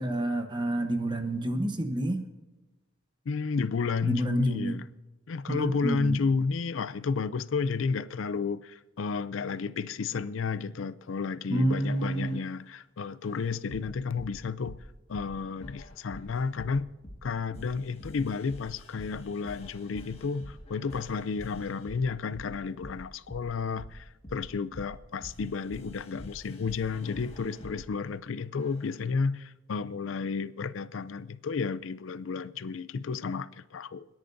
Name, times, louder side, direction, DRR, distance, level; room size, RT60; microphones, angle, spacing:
voice 1, 0.0-2.2 4.0-4.8 5.5-6.2 11.5-12.4, right 1 dB, 20° right, 0.9 m, -29 dB
voice 2, 3.3-4.8 5.3-14.8 15.1-16.9 17.2-34.1, left 5 dB, 75° left, 0.4 m, -32 dB
sound 1, 11.6-12.5 13.2-27.9 28.6-29.0, left 1 dB, 30° left, 1.8 m, -47 dB
29.5 x 10.5 x 2.6 m
head